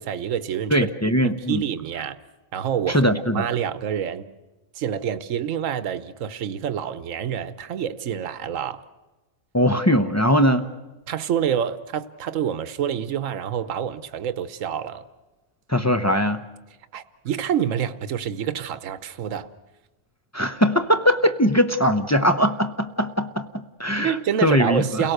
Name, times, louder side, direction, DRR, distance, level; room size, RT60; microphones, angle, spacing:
voice 1, 0.0-0.8 1.2-2.2 2.5-4.3 4.7-8.8 11.1-15.0 16.9-19.5 24.0-25.1, right 9 dB, 70° right, 1.2 m, -27 dB
voice 2, 0.7-1.6 2.9-3.4 9.5-10.7 15.7-16.4 20.3-25.1, equal, 15° left, 0.7 m, -21 dB
29.5 x 17.5 x 6.6 m
omnidirectional pair, 1.4 m